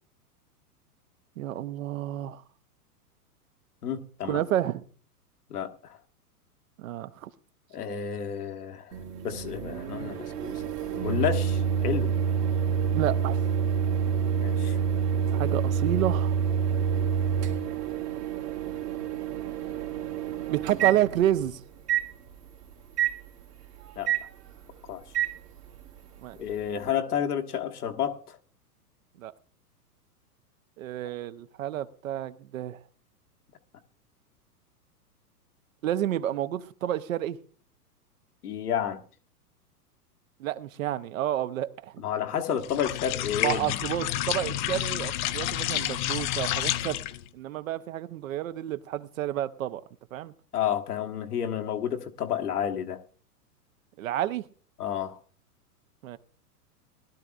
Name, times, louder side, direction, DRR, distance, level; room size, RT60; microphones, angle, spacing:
voice 1, 1.4-2.4 4.3-4.8 6.8-7.3 12.9-13.4 15.3-16.3 20.5-21.6 26.2-26.4 29.2-29.3 30.8-32.8 35.8-37.4 40.4-41.9 43.4-47.0 47.3-49.8 50.1-50.3 54.0-54.4 56.0-56.2, right 12 dB, 55° right, 0.9 m, -30 dB
voice 2, 3.8-4.4 5.5-6.0 7.7-8.9 9.2-12.1 14.4-14.8 24.0-24.1 24.9-25.0 26.4-28.4 38.4-39.0 42.0-43.8 50.5-53.0 54.8-55.2, left 9 dB, 70° left, 1.5 m, -31 dB
Microwave oven, 8.9-21.5 21.9-22.0 23.0-23.1 24.1-24.2 25.1-25.3, right 7 dB, 75° right, 2.3 m, -27 dB
sound 1, 42.6-47.3, left 13 dB, 30° left, 0.5 m, -30 dB
20.5 x 12.0 x 2.5 m
hypercardioid pair, 110°, 47 cm